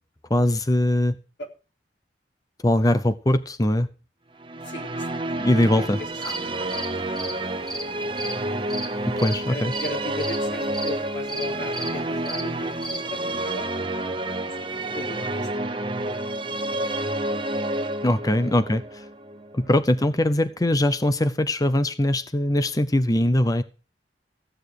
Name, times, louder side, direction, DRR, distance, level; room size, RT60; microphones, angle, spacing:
voice 1, 0.3-1.2 2.6-3.9 5.3-6.3 9.2-9.7 18.0-19.0 19.5-23.6, left 1 dB, 20° left, 12 dB, 0.7 m, -21 dB
Musical instrument, 4.4-19.8, right 1 dB, 30° right, 1.0 m, -29 dB
voice 2, 4.6-5.3 5.7-5.9 9.5-13.9 14.6-15.5, left 1 dB, 90° left, 2 dB, 3.7 m, -38 dB
sound 1, 6.0-13.0, right 1 dB, ahead, 2.6 m, -36 dB
15.0 x 9.0 x 4.8 m, 0.35 s
head